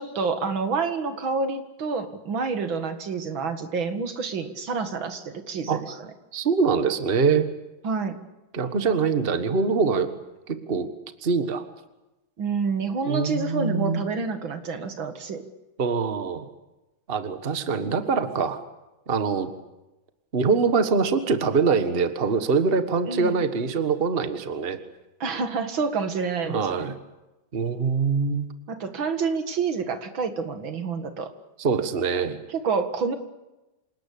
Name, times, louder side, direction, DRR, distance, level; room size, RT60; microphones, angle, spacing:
voice 1, 0.0-5.9 7.8-8.2 12.4-15.4 23.1-23.3 25.2-26.9 28.7-31.3 32.5-33.2, right 4 dB, 75° right, 9 dB, 2.6 m, -28 dB
voice 2, 6.3-7.5 8.5-10.1 10.5-10.9 11.2-11.6 13.1-14.0 15.8-16.5 17.1-18.6 19.1-19.5 20.3-24.8 26.5-27.0 27.5-28.5 31.6-32.4, right 5 dB, 30° right, 10 dB, 1.6 m, -24 dB
27.5 x 19.0 x 8.5 m, 1.0 s
omnidirectional pair, 2.2 m